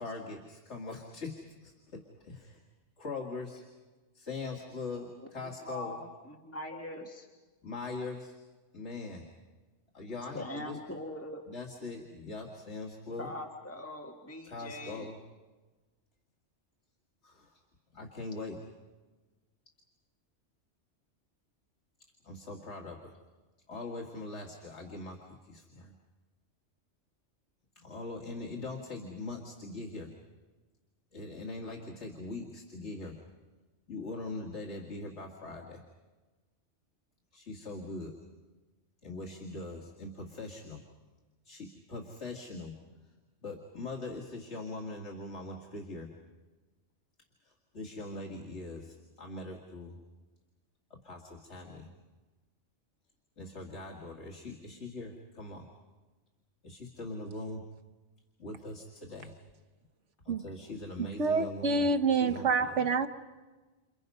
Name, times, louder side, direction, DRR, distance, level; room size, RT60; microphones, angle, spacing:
voice 1, 0.0-2.6 3.0-3.6 4.1-6.0 7.6-8.3 8.7-9.2 9.9-10.8 11.5-13.3 14.4-15.2 17.2-17.6 17.9-18.6 22.2-23.1 23.7-25.2 25.4-25.9 27.8-30.1 31.1-33.2 33.9-35.8 37.3-38.1 39.0-40.8 41.4-42.7 43.4-46.1 47.4-50.0 51.0-51.9 53.4-55.7 56.6-57.7 58.4-59.3 60.2-62.9, left 2 dB, 70° left, 2.2 m, -41 dB
voice 2, 5.6-7.3 10.3-11.4 13.2-15.1, left 1 dB, 10° left, 1.5 m, -42 dB
voice 3, 61.0-63.1, right 4 dB, 80° right, 1.4 m, -27 dB
29.5 x 28.0 x 5.5 m
omnidirectional pair, 1.2 m